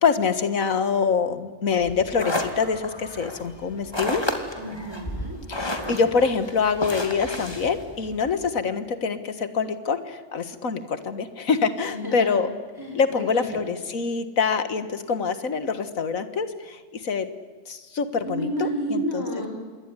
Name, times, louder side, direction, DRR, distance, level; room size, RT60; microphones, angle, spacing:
voice 1, 0.0-4.3 5.5-12.5 13.0-17.3 17.7-19.2, left 5 dB, 85° left, 11 dB, 2.1 m, -25 dB
sound 1, 1.8-8.5, left 1 dB, 20° left, 2.7 m, -32 dB
voice 2, 4.6-5.4 5.8-6.0 11.9-12.4 12.8-13.6 18.2-19.5, right 1 dB, 15° right, 1 dB, 4.6 m, -31 dB
27.0 x 21.5 x 9.8 m, 1.4 s
omnidirectional pair, 1.4 m